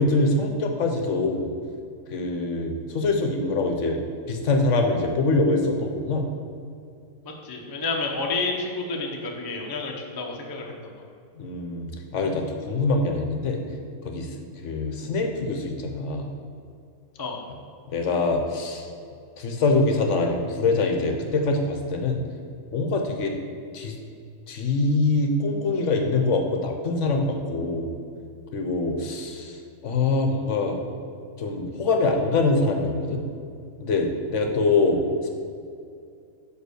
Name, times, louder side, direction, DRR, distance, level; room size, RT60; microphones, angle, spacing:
voice 1, 0.0-1.5 2.1-4.0 4.3-6.3 11.3-13.6 14.0-14.4 14.6-16.3 17.9-18.9 19.4-22.2 22.7-23.3 23.7-24.0 24.5-27.9 28.5-30.8 31.4-33.2 33.8-35.3, left 3 dB, 65° left, 3 dB, 1.0 m, -24 dB
voice 2, 7.4-10.8 17.2-17.4, left 3 dB, 25° left, 0 dB, 0.5 m, -30 dB
5.2 x 4.9 x 6.4 m, 2.4 s
omnidirectional pair, 1.5 m